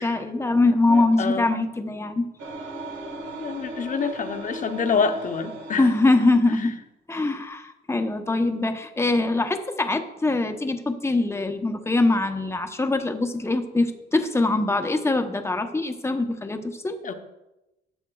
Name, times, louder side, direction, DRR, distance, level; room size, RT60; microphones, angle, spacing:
voice 1, 0.0-2.3 5.8-6.7 7.1-17.0, left 2 dB, 15° left, 7 dB, 0.8 m, -23 dB
voice 2, 0.9-1.5 3.4-5.9 17.0-17.1, left 5 dB, 40° left, 7 dB, 0.8 m, -27 dB
sound 1, 2.4-6.1, right 2 dB, 75° right, 1.7 m, -37 dB
13.0 x 7.2 x 2.3 m, 0.96 s
cardioid pair, 90°, 20 cm